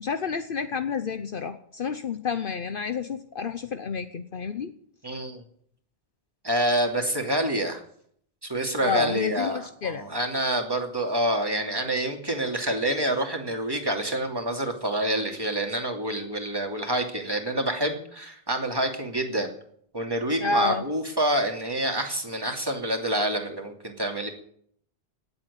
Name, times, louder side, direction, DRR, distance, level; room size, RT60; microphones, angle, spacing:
voice 1, 0.0-4.7 8.8-10.0 20.4-20.8, left 5 dB, 60° left, 10 dB, 1.0 m, -29 dB
voice 2, 5.0-5.4 6.4-7.8 8.4-19.5 19.9-24.3, right 1 dB, 20° right, 3 dB, 2.7 m, -27 dB
18.0 x 8.1 x 9.9 m, 0.64 s
omnidirectional pair, 1.1 m